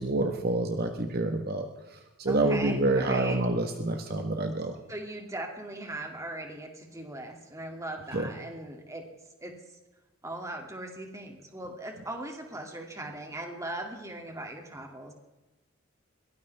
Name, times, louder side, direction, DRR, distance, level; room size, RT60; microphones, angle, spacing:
voice 1, 0.0-1.7 2.2-4.7 8.1-8.3, right 2 dB, 50° right, 5 dB, 1.4 m, -27 dB
voice 2, 2.3-3.4 4.9-9.1 9.4-9.5 10.2-15.1, right 1 dB, 15° right, 2 dB, 2.7 m, -39 dB
22.5 x 18.0 x 3.6 m, 1.1 s
head